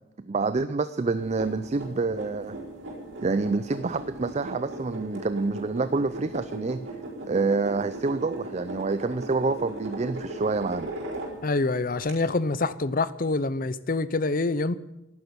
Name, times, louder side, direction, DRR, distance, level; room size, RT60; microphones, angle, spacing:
voice 1, 0.2-2.6 3.2-6.9 7.2-10.9, right 3 dB, 35° right, 13 dB, 0.4 m, -27 dB
sound 1, 1.1-11.6 12.0-12.1, right 2 dB, 70° right, 4.8 m, -38 dB
voice 2, 11.4-14.8, left 3 dB, 45° left, 16 dB, 0.6 m, -26 dB
12.0 x 10.5 x 9.6 m, 0.96 s
head